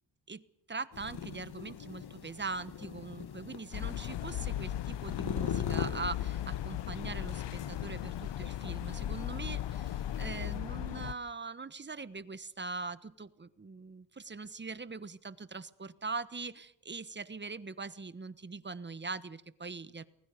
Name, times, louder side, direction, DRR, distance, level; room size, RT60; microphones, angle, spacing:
voice 1, 0.7-20.0, right 4 dB, 25° right, 14 dB, 1.2 m, -42 dB
sound 1, 0.9-10.6, left 8 dB, 65° left, 1.6 m, -42 dB
sound 2, 3.7-11.1, left 12 dB, 85° left, 0.8 m, -37 dB
29.0 x 21.0 x 5.2 m, 0.78 s
cardioid pair, 100°, 42 cm